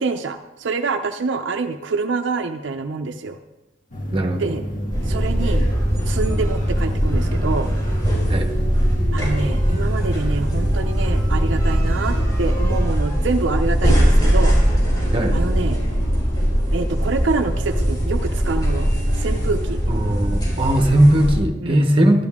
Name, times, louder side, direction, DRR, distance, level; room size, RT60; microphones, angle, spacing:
voice 1, 0.0-3.4 4.4-4.6 5.1-5.7 6.1-7.7 9.1-14.6 15.3-15.8 16.7-18.9 19.2-19.8 21.6-21.8, right 3 dB, 70° right, 6 dB, 0.6 m, -26 dB
sound 1, 3.9-12.9, equal, 50° left, 2.5 m, -27 dB
voice 2, 4.1-4.6 8.3-8.5 15.1-15.4 19.9-22.2, right 1 dB, 30° right, 4 dB, 1.0 m, -18 dB
sound 2, 4.9-21.4, equal, 20° left, 4.8 m, -20 dB
12.0 x 11.5 x 3.6 m, 1.0 s
head